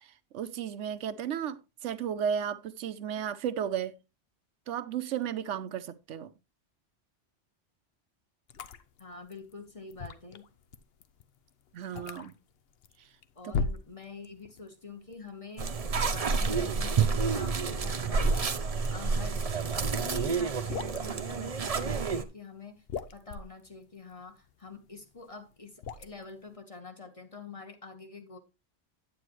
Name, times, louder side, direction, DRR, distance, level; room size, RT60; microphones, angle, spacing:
voice 1, 0.0-4.0 4.7-6.3 11.7-12.3 13.4-13.5, right 8 dB, 80° right, 1.0 m, -34 dB
sound 1, 8.5-14.7 14.9-20.0 20.4-21.2 21.9-22.3 22.6-26.5, left 5 dB, 60° left, 0.9 m, -39 dB
voice 2, 9.0-10.4 13.3-15.8 16.1-18.4 18.9-22.8 23.1-28.4, left 4 dB, 30° left, 1.4 m, -46 dB
sound 2, 15.6-22.2, right 5 dB, 35° right, 0.7 m, -29 dB
9.4 x 8.8 x 3.1 m
omnidirectional pair, 1.2 m